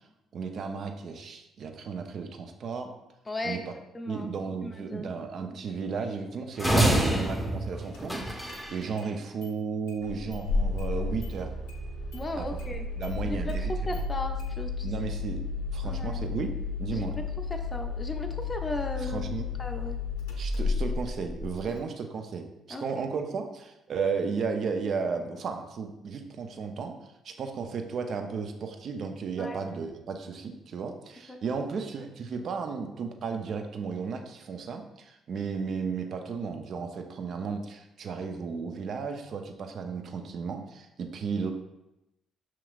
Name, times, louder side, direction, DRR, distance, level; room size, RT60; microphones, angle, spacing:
voice 1, 0.3-2.9 3.4-3.7 4.1-11.6 12.4-12.5 13.0-14.0 14.8-15.4 15.7-17.1 19.0-19.5 20.4-27.0 27.2-41.5, right 5 dB, 60° right, 5 dB, 0.5 m, -34 dB
voice 2, 3.3-3.6 3.9-4.3 4.6-5.1 5.4-5.6 12.1-12.9 13.2-15.2 15.8-16.3 16.9-17.2 17.5-19.3 19.6-20.0 22.7-23.0 29.4-29.6 31.3-31.6, left 1 dB, 25° left, 4 dB, 0.5 m, -36 dB
sound 1, 6.6-8.8, right 1 dB, ahead, 0.7 m, -26 dB
Engine starting, 7.9-8.0 8.5-9.1 9.4-9.5 9.9-21.8, left 3 dB, 85° left, 0.6 m, -33 dB
5.8 x 3.0 x 2.4 m, 0.90 s
hypercardioid pair, 55°, 0 cm